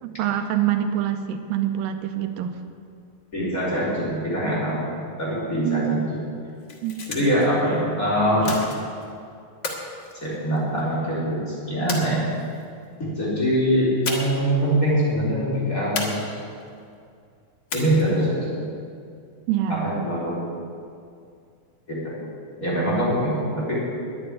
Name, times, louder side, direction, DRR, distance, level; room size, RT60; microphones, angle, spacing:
voice 1, 0.0-2.6 5.6-6.1 6.8-7.0 19.5-20.0, right 11 dB, 85° right, 7 dB, 2.4 m, -25 dB
voice 2, 3.3-6.2 7.1-8.6 10.1-12.2 13.0-16.2 17.7-18.6 19.7-20.3 21.9-22.1 22.6-23.8, equal, 25° left, -8 dB, 4.5 m, -23 dB
sound 1, 6.5-7.5 8.4-9.1 9.6-10.9 11.9-12.6 14.0-14.5 14.8-14.9 16.0-16.7 17.7-18.3, left 3 dB, 45° left, 1.6 m, -32 dB
10.0 x 9.7 x 9.9 m, 2.4 s
omnidirectional pair, 4.1 m